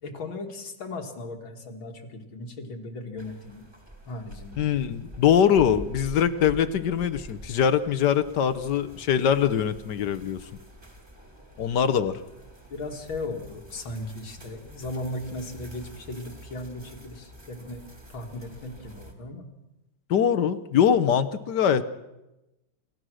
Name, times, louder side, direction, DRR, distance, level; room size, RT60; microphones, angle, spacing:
voice 1, 0.0-3.7 4.0-4.6 12.7-17.8 18.1-19.4, left 2 dB, 80° left, 3 dB, 2.9 m, -37 dB
sound 1, 3.2-19.1, equal, 15° right, 2.5 m, -46 dB
voice 2, 4.6-10.4 11.6-12.1 20.1-21.8, left 8 dB, 65° left, 13 dB, 1.4 m, -23 dB
28.5 x 15.0 x 6.3 m, 0.98 s
omnidirectional pair, 2.1 m